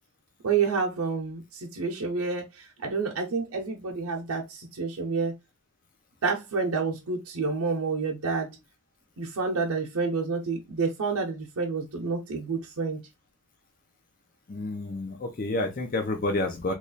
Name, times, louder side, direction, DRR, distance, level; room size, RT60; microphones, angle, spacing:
voice 1, 0.4-5.3 6.2-8.5 9.2-13.0, right 4 dB, 90° right, 0.6 m, -29 dB
voice 2, 14.5-16.7, left 2 dB, 40° left, 0.5 m, -29 dB
3.1 x 2.3 x 3.9 m
head